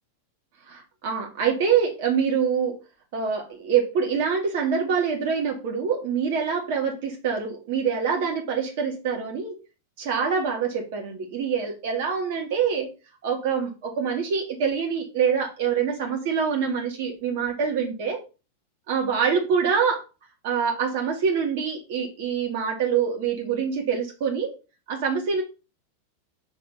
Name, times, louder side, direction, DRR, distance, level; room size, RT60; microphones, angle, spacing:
voice 1, 0.7-2.7 3.1-9.6 10.0-12.9 13.2-18.2 18.9-20.0 20.4-24.5 24.9-25.4, right 6 dB, 50° right, 2 dB, 1.7 m, -25 dB
6.2 x 3.3 x 5.3 m, 0.31 s
figure-of-eight pair, 90°, 0 cm